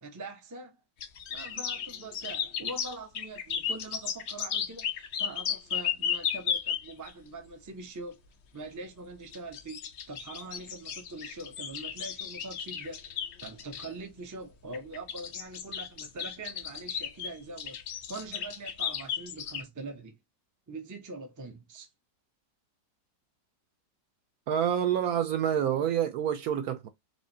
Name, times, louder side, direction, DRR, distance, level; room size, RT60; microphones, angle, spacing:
voice 1, 0.0-0.7 1.3-8.2 8.5-9.8 10.1-20.2 20.7-21.9, right 2 dB, 30° right, 0.3 m, -43 dB
sound 1, 1.0-7.1 9.3-13.9 14.7-19.6, left 8 dB, 90° left, 0.5 m, -34 dB
voice 2, 24.5-26.9, right 9 dB, 70° right, 0.9 m, -27 dB
4.8 x 2.6 x 2.6 m
omnidirectional pair, 1.9 m